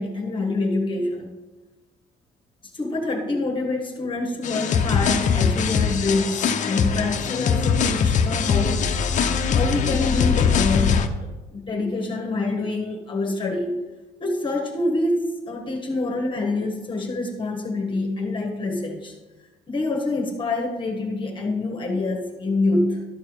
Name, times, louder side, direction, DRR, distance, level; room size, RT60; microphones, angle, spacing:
voice 1, 0.0-1.3 2.7-8.9 9.5-13.9 14.2-19.1 19.7-23.0, left 2 dB, 30° left, 2 dB, 1.3 m, -26 dB
sound 1, 4.4-11.1, left 6 dB, 45° left, 0.7 m, -22 dB
12.5 x 4.7 x 4.9 m, 1.1 s
cardioid pair, 110°, 17 cm